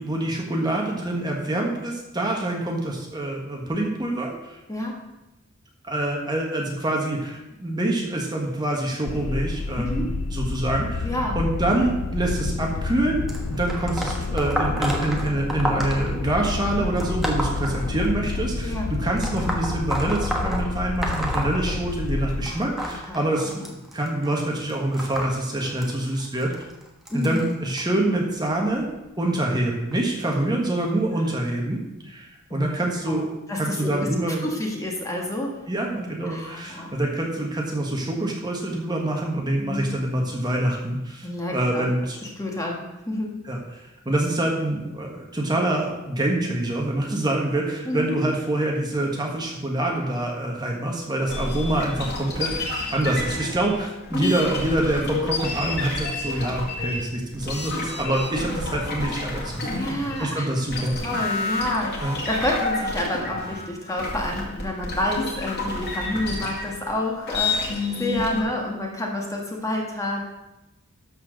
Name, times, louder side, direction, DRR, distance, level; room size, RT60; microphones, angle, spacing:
voice 1, 0.0-4.6 5.8-11.1 11.3-13.2 13.5-23.7 23.9-26.5 27.1-28.9 29.2-31.8 32.0-33.3 33.5-34.5 35.7-42.2 43.4-60.9 62.0-62.2, right 1 dB, 20° right, -1 dB, 1.4 m, -26 dB
sound 1, 9.1-22.5, left 3 dB, 90° left, 0.6 m, -29 dB
voice 2, 9.8-10.1 11.0-11.4 18.6-18.9 22.4-22.6 23.0-23.2 27.1-27.5 31.2-31.3 32.5-34.1 34.4-35.6 36.2-36.9 39.6-40.0 41.2-41.9 42.2-43.4 47.8-48.2 54.1-54.3 59.7-60.5 61.0-70.2, left 1 dB, 15° left, 0 dB, 1.5 m, -29 dB
sound 2, 13.3-18.4 19.2-22.2 22.5-27.8 28.6-28.9 29.9-30.0 30.9-31.0 31.7-31.8, equal, ahead, 1.3 m, -31 dB
sound 3, 51.3-60.3 60.6-68.4, left 2 dB, 50° left, 2.2 m, -30 dB
12.5 x 4.5 x 6.4 m, 0.98 s
head